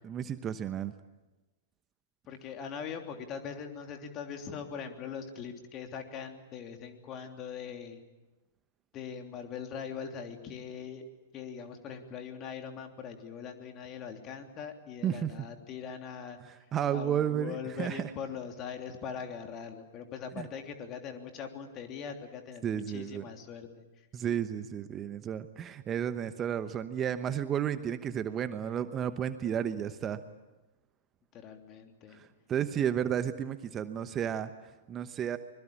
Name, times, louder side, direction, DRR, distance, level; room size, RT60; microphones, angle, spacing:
voice 1, 0.0-0.9 15.0-15.5 16.4-18.1 20.4-20.5 22.6-23.2 24.1-30.2 32.1-35.4, right 9 dB, 25° right, 11 dB, 1.0 m, -32 dB
voice 2, 2.3-8.0 8.9-11.1 11.3-16.4 16.9-23.8 31.3-32.2, left 7 dB, 30° left, 5 dB, 3.2 m, -41 dB
25.0 x 21.5 x 8.8 m, 1.1 s
figure-of-eight pair, 105°, 0 cm